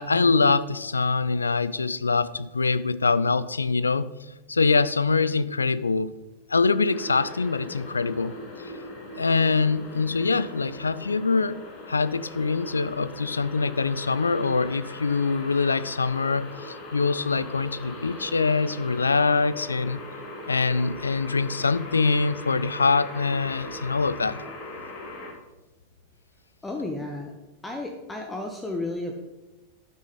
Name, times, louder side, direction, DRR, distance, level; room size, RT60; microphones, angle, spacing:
voice 1, 0.0-4.1 4.5-6.1 6.5-8.4 8.6-8.7 9.2-11.6 11.9-20.0 20.5-24.4, left 4 dB, 75° left, 17 dB, 0.3 m, -24 dB
sound 1, 6.9-25.3, left 1 dB, 40° left, 1.8 m, -40 dB
voice 2, 26.6-27.3 27.6-29.2, left 2 dB, 10° left, 3 dB, 0.9 m, -32 dB
12.0 x 6.3 x 4.0 m, 1.1 s
figure-of-eight pair, 90°, 0 cm